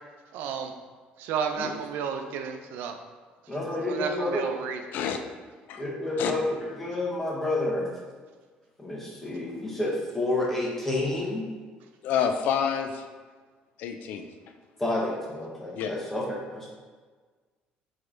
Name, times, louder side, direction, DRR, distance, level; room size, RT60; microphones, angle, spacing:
voice 1, 0.3-0.7 1.2-2.9 3.9-4.8, right 6 dB, 80° right, 5 dB, 0.6 m, -32 dB
voice 2, 3.5-4.5 5.8-7.9 8.8-11.4 14.8-16.7, left 2 dB, 10° left, -4 dB, 1.4 m, -29 dB
voice 3, 12.0-13.0 13.8-14.3 15.7-15.9, left 8 dB, 65° left, 6 dB, 0.5 m, -28 dB
7.8 x 3.3 x 3.9 m, 1.4 s
cardioid pair, 145°, 3 cm